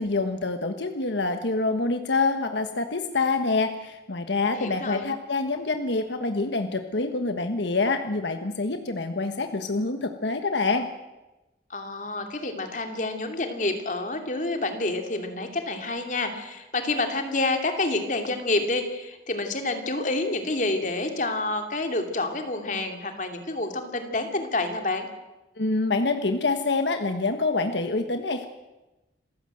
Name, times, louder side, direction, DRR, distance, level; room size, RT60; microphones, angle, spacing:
voice 1, 0.0-10.9 25.6-28.5, left 3 dB, 75° left, 7 dB, 1.4 m, -26 dB
voice 2, 4.4-5.1 11.7-25.1, left 2 dB, 45° left, 5 dB, 2.7 m, -28 dB
28.0 x 15.5 x 7.9 m, 1.0 s
head